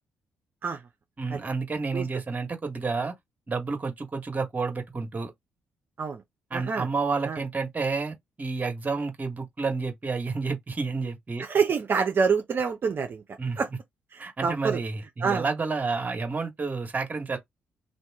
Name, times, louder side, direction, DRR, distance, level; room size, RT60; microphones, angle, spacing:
voice 1, 1.2-3.1 3.5-5.3 6.5-11.4 13.4-13.8 14.2-17.4, right 4 dB, 35° right, 1.5 m, -30 dB
voice 2, 6.5-6.9 7.2-7.4 11.4-13.2 13.6-13.7 14.4-14.8 15.2-15.4, right 5 dB, 50° right, 0.8 m, -26 dB
2.8 x 2.6 x 3.6 m
hypercardioid pair, 50°, 5 cm